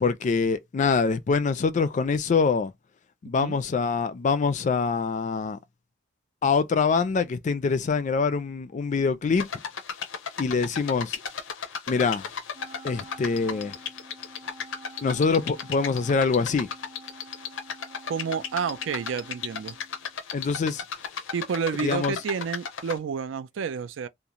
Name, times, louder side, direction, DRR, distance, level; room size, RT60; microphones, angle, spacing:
voice 1, 0.0-2.7 3.2-5.6 6.4-9.5 10.4-11.2 11.9-12.2 12.8-13.7 15.0-16.7 20.3-20.8 21.8-22.1, left 5 dB, 40° left, 0.3 m, -24 dB
sound 1, 9.4-23.0, left 7 dB, 90° left, 0.5 m, -35 dB
Wind instrument woodwind instrument, 12.5-20.2, right 2 dB, 20° right, 0.5 m, -49 dB
voice 2, 18.1-19.8 21.3-24.1, right 6 dB, 80° right, 0.4 m, -30 dB
2.5 x 2.0 x 2.9 m
head